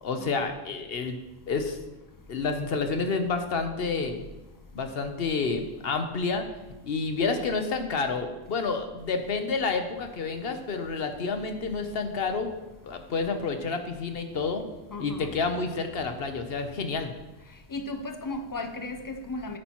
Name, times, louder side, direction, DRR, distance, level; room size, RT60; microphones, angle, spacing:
voice 1, 0.0-1.2 1.5-1.8 2.3-4.2 4.7-6.5 6.8-12.5 12.8-14.6 15.0-17.1, left 4 dB, 65° left, 1.1 m, -29 dB
voice 2, 14.9-15.4 17.7-19.6, left 2 dB, 25° left, 0.5 m, -35 dB
9.9 x 8.7 x 3.0 m
omnidirectional pair, 1.1 m